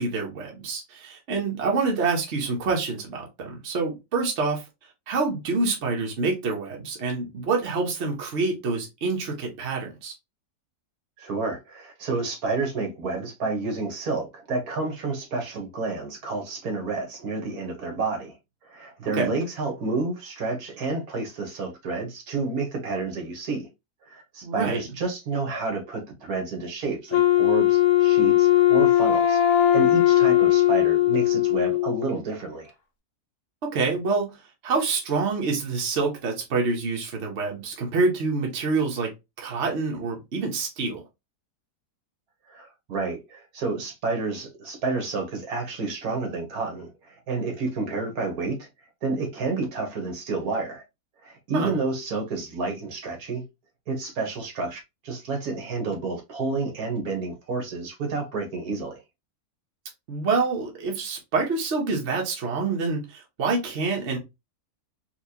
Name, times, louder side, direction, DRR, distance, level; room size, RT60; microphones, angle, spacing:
voice 1, 0.0-4.6 5.1-10.1 19.2-19.4 24.4-24.8 33.6-34.4 34.6-41.0 51.5-51.7 60.1-64.2, right 4 dB, 50° right, 1.1 m, -27 dB
voice 2, 11.2-18.4 18.6-23.7 24.1-32.7 42.5-48.7 49.0-50.8 51.2-53.4 53.9-59.0, right 3 dB, 70° right, 1.5 m, -30 dB
Wind instrument woodwind instrument, 27.1-32.1, left 13 dB, 65° left, 1.1 m, -19 dB
4.5 x 2.3 x 2.8 m
omnidirectional pair, 1.7 m